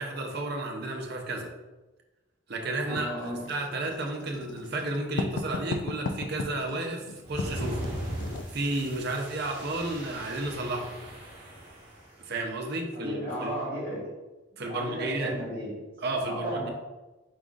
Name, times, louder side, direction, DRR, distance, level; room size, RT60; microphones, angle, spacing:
voice 1, 0.0-1.5 2.5-7.9 8.3-10.9 12.2-13.6 14.6-15.3 16.0-16.7, right 2 dB, 55° right, 2 dB, 0.7 m, -32 dB
voice 2, 2.9-3.5 12.9-14.2 14.6-15.9 16.2-16.7, equal, 45° left, -11 dB, 1.4 m, -34 dB
Writing, 3.0-8.9, left 3 dB, 60° left, 0.3 m, -36 dB
sound 1, 7.2-12.1, right 1 dB, 30° right, 1.4 m, -39 dB
4.8 x 3.7 x 2.4 m, 1.1 s
head